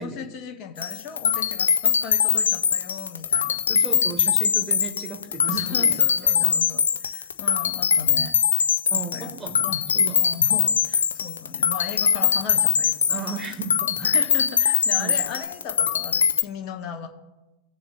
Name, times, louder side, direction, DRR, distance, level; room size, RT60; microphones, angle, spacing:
voice 1, 0.0-3.6 5.5-8.7 8.9-9.3 9.6-9.8 10.2-13.2 13.5-13.6 14.0-17.1, left 7 dB, 40° left, 4 dB, 1.3 m, -37 dB
sound 1, 0.8-16.4, left 7 dB, 70° left, 0.5 m, -22 dB
voice 2, 3.7-6.0 6.2-6.5 8.9-9.7 9.9-10.2 13.1-14.1 14.9-15.2, right 5 dB, 15° right, 3 dB, 1.8 m, -35 dB
17.5 x 6.9 x 2.4 m, 1.1 s
figure-of-eight pair, 90°, 0 cm